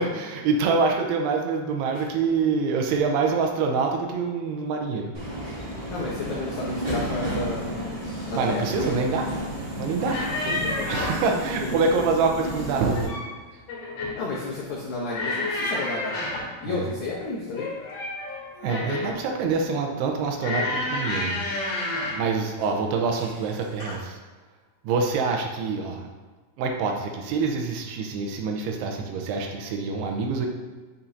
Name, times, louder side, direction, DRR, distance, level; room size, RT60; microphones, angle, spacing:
voice 1, 0.0-5.1 8.3-9.3 9.8-10.2 10.9-13.1 16.7-16.9 18.6-21.4 22.2-24.2 24.8-26.1 26.6-30.5, right 4 dB, 90° right, 2 dB, 2.7 m, -25 dB
Subway metro underground, 5.1-13.0, right 1 dB, 45° right, 1.4 m, -32 dB
voice 2, 5.9-7.7 8.3-8.7 10.6-10.7 11.3-11.4 11.6-11.9 14.2-16.2 16.6-17.7 22.7-22.8 24.9-25.1, left 3 dB, 85° left, -5 dB, 1.7 m, -32 dB
sound 1, 10.1-11.3 12.7-13.3 13.7-14.2 15.1-16.5 17.5-19.2 20.4-22.3 23.1-23.4 23.8-24.0, left 2 dB, 50° left, 2.7 m, -30 dB
7.0 x 5.7 x 2.6 m, 1.4 s
omnidirectional pair, 4.7 m